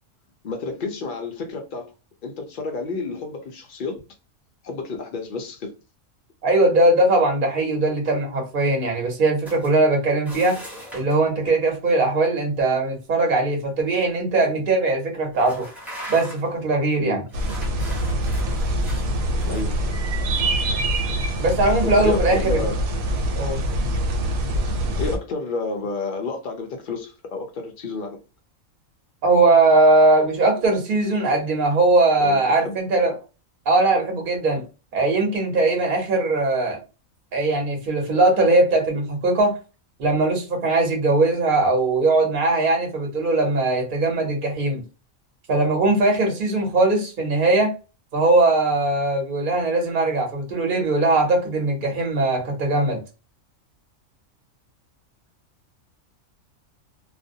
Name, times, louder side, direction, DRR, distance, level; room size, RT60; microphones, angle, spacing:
voice 1, 0.4-1.9 2.2-4.0 4.6-5.8 17.0-17.3 19.5-19.8 21.8-22.8 25.0-28.2 32.2-32.8, left 3 dB, 80° left, 0.4 m, -30 dB
voice 2, 6.4-10.6 10.9-15.7 16.1-17.2 21.4-22.6 23.4-23.6 29.2-33.1 33.7-34.6 34.9-36.8 37.3-39.5 40.0-44.8 45.5-47.7 48.1-53.0, right 2 dB, 45° right, 0.9 m, -20 dB
sound 1, 9.4-9.7 10.2-11.2 13.8-13.9 14.4-14.5 15.3-16.6 17.3-19.6, equal, ahead, 0.4 m, -40 dB
sound 2, 17.3-25.2, right 1 dB, 85° right, 1.1 m, -24 dB
2.4 x 2.1 x 2.6 m
omnidirectional pair, 1.4 m